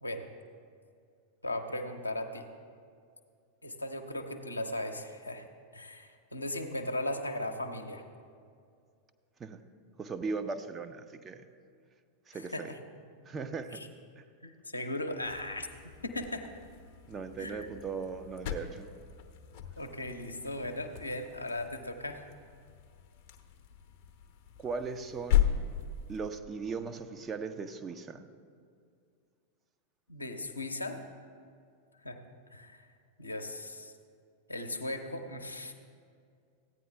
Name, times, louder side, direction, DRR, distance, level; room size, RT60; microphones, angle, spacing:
voice 1, 1.4-2.5 3.6-5.5 5.7-8.0 12.3-12.8 13.7-13.9 14.4-15.7 16.0-16.4 17.4-17.7 19.8-22.3 30.1-31.0 32.0-32.2 32.5-32.9 33.2-33.9 34.5-35.7, left 1 dB, 85° left, 4 dB, 0.7 m, -37 dB
voice 2, 10.0-11.4 12.3-12.7 13.3-13.8 14.2-14.3 17.1-18.9 24.6-25.5 26.1-28.3, right 4 dB, 20° right, 8 dB, 0.5 m, -38 dB
sound 1, 15.2-26.3, left 11 dB, 45° left, 0.7 m, -36 dB
15.0 x 9.2 x 3.3 m, 2.3 s
figure-of-eight pair, 90°, 0 cm